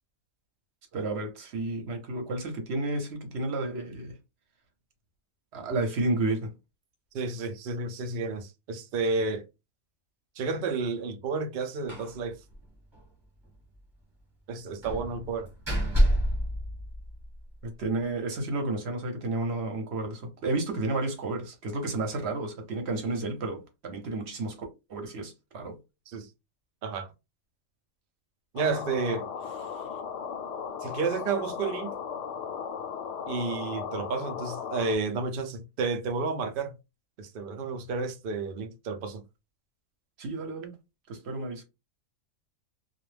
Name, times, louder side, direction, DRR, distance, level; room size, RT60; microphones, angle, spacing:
voice 1, 0.9-4.1 5.5-6.5 17.6-24.6 24.9-25.8 29.8-29.9 40.2-40.8 41.1-41.6, right 2 dB, 55° right, 0.9 m, -31 dB
voice 2, 7.1-9.4 10.4-12.3 14.5-15.5 26.1-26.3 26.8-27.1 28.5-29.3 30.8-31.9 33.3-36.7 37.2-39.2, right 4 dB, 85° right, 0.4 m, -31 dB
Slam, 11.9-12.2 12.5-12.6 12.9-13.0 14.8-17.4, equal, 20° right, 1.0 m, -27 dB
sound 1, 28.6-35.0, left 7 dB, 70° left, 0.8 m, -36 dB
2.3 x 2.0 x 3.2 m
omnidirectional pair, 1.5 m